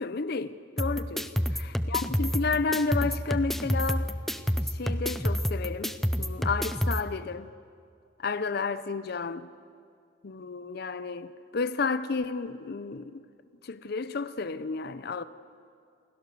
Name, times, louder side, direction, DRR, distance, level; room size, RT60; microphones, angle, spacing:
voice 1, 0.0-4.1 4.7-7.5 8.2-9.5 10.2-13.2 13.6-15.2, left 4 dB, 55° left, 0.6 m, -31 dB
sound 1, 0.8-7.0, equal, ahead, 0.6 m, -29 dB
27.5 x 16.5 x 6.8 m
head